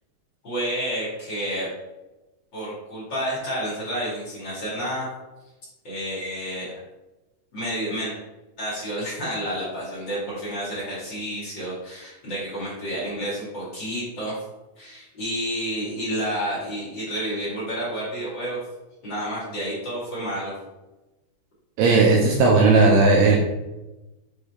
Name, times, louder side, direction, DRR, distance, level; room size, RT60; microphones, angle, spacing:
voice 1, 0.4-1.7 2.5-5.1 5.8-6.8 7.5-8.2 8.6-14.4 14.8-18.6 19.0-20.5, equal, 40° left, -8 dB, 1.7 m, -30 dB
voice 2, 21.8-23.4, right 3 dB, 80° right, -1 dB, 2.3 m, -16 dB
6.6 x 4.4 x 3.5 m, 1.1 s
omnidirectional pair, 5.3 m